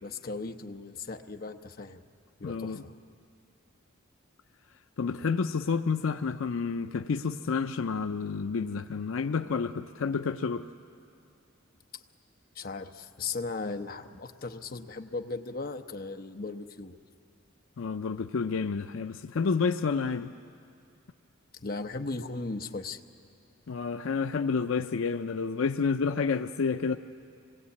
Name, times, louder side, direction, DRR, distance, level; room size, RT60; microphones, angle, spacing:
voice 1, 0.0-2.0 2.4-3.0 12.5-17.0 21.6-23.0, left 3 dB, 45° left, 6 dB, 0.8 m, -37 dB
voice 2, 2.4-2.8 5.0-10.7 17.8-20.3 23.7-27.0, left 5 dB, 75° left, 9 dB, 0.5 m, -29 dB
26.0 x 20.0 x 8.4 m, 2.4 s
head